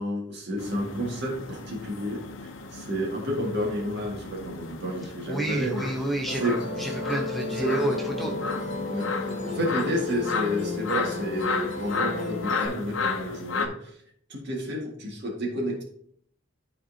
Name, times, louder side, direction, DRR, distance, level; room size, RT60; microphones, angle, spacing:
voice 1, 0.0-2.2 2.7-5.9 6.4-6.8 7.5-7.7 8.8-9.1 9.4-13.9 14.3-15.8, equal, 60° right, -1 dB, 1.9 m, -30 dB
sound 1, 0.6-13.7, left 4 dB, 80° left, 0.7 m, -34 dB
voice 2, 5.3-8.3, right 1 dB, ahead, 0 dB, 0.8 m, -30 dB
Musical instrument, 6.3-12.7, left 3 dB, 45° left, 1.8 m, -33 dB
12.0 x 4.2 x 2.8 m, 0.67 s
head